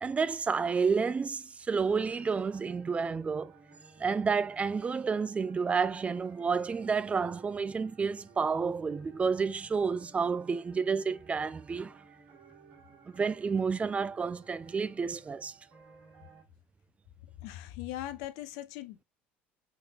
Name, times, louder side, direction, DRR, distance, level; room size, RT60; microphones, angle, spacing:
voice 1, 0.0-3.5 4.0-12.0 13.1-15.6, right 5 dB, 20° right, 0.3 m, -30 dB
sound 1, 2.1-16.4, right 4 dB, 55° right, 1.7 m, -57 dB
voice 2, 17.4-19.0, left 14 dB, 65° left, 0.4 m, -40 dB
3.6 x 3.2 x 2.2 m
hypercardioid pair, 65°, 6 cm